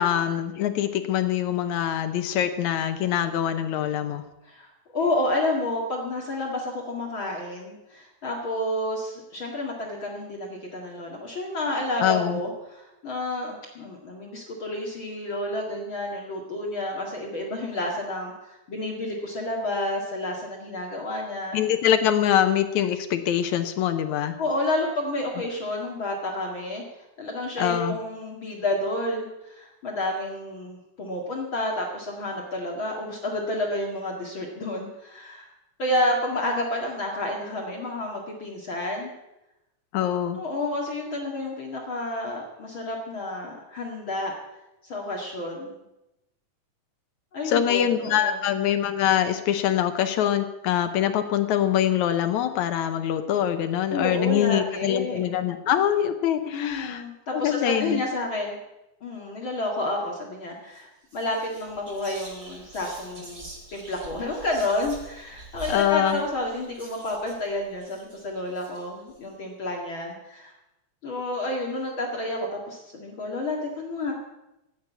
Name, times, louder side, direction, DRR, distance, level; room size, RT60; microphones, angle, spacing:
voice 1, 0.0-4.2 12.0-12.4 21.5-24.4 27.6-28.0 39.9-40.4 47.5-57.0 57.3-58.0 65.7-66.2, left 10 dB, 75° left, 9 dB, 2.1 m, -24 dB
voice 2, 4.9-21.6 24.4-35.5 35.8-39.1 40.3-44.3 44.8-45.8 47.3-48.5 53.9-55.2 56.4-58.6 59.0-63.5 63.7-70.5 71.0-74.1, left 1 dB, 45° left, 0 dB, 2.4 m, -30 dB
Whispering, 60.6-60.8 61.1-69.2, right 2 dB, 25° right, 2.9 m, -45 dB
14.5 x 9.1 x 8.3 m, 0.94 s
omnidirectional pair, 3.6 m